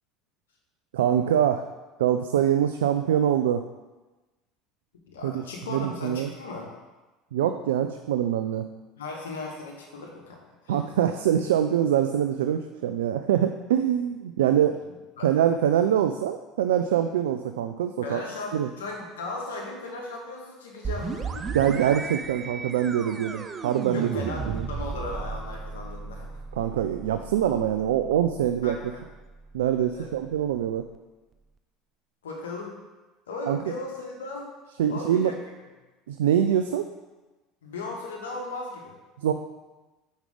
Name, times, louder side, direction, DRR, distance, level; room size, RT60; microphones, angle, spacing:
voice 1, 0.9-1.6 2.0-3.6 5.2-5.4 5.7-6.3 7.3-8.7 10.7-14.8 15.2-18.2 18.5-18.7 21.5-24.7 26.6-28.8 29.5-30.9 33.5-33.6 34.8-35.3 36.1-36.9 39.2-39.3, right 10 dB, 80° right, 7 dB, 0.3 m, -24 dB
voice 2, 5.1-6.7 9.0-10.8 15.2-15.3 18.0-21.9 23.9-26.4 28.6-29.0 29.9-30.2 32.2-32.7 33.3-34.5 34.9-35.7 37.6-38.9, left 3 dB, 85° left, 0 dB, 1.3 m, -37 dB
sound 1, 20.8-30.4, right 5 dB, 35° right, 0.6 m, -36 dB
5.2 x 5.1 x 5.0 m, 1.2 s
hypercardioid pair, 75°, 0 cm